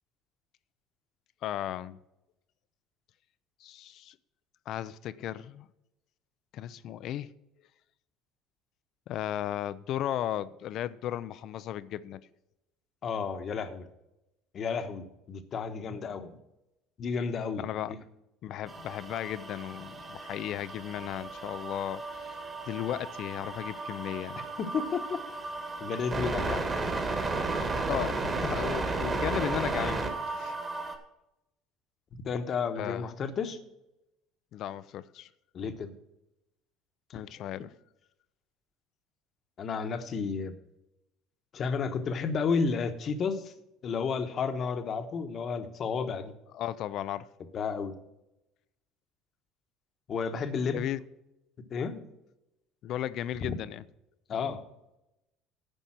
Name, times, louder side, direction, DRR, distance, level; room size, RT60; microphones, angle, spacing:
voice 1, 1.4-2.0 3.6-4.1 4.7-5.7 6.5-7.3 9.1-12.2 17.6-17.9 18.4-22.4 22.7-24.4 27.9-30.0 30.3-30.6 32.8-33.1 34.5-35.3 37.1-37.7 46.5-47.3 50.7-51.0 52.8-53.8, left 12 dB, 55° left, 0.4 m, -35 dB
voice 2, 13.0-13.9 14.5-16.4 17.0-18.0 24.6-25.2 25.8-26.6 32.1-33.6 35.5-35.9 37.1-37.2 39.6-40.5 41.5-43.5 43.8-46.3 47.5-48.0 50.1-50.8 51.7-52.0 53.4-53.6 54.3-54.6, left 5 dB, 40° left, 1.1 m, -32 dB
sound 1, 18.7-31.0, right 3 dB, 25° right, 1.7 m, -34 dB
10.0 x 5.4 x 7.5 m
supercardioid pair, 110°, 0 cm